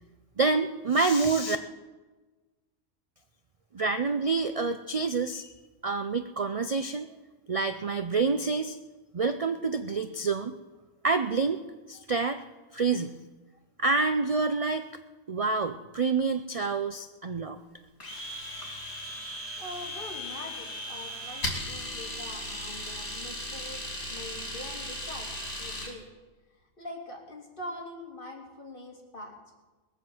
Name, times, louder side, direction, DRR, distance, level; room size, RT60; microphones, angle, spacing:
voice 1, 0.4-1.6 3.7-5.5 5.8-7.1 7.5-8.8 9.1-10.5 11.0-11.6 11.9-12.4 12.7-13.2 13.8-14.9 15.3-17.6, right 4 dB, 55° right, 9 dB, 0.3 m, -27 dB
Domestic sounds home sounds, 18.0-25.9, left 1 dB, 60° left, 3.5 m, -37 dB
voice 2, 19.6-25.3 25.6-26.1 26.8-29.4, left 1 dB, 40° left, -1 dB, 2.9 m, -43 dB
20.5 x 7.6 x 7.7 m, 1.2 s
omnidirectional pair, 1.4 m